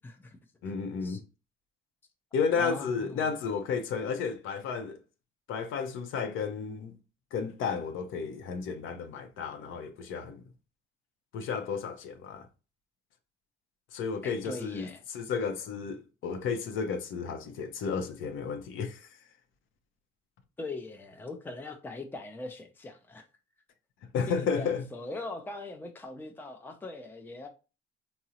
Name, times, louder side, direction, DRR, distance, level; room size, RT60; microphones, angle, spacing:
voice 1, 0.6-1.2 2.3-5.0 5.5-7.0 7.3-10.4 11.3-12.5 13.9-19.1 24.1-24.9, left 6 dB, 80° left, 0.6 m, -32 dB
voice 2, 2.6-3.3 14.2-15.0 20.6-23.3 24.3-27.5, left 2 dB, 10° left, 0.4 m, -41 dB
3.6 x 2.0 x 2.7 m
cardioid pair, 90°, 20 cm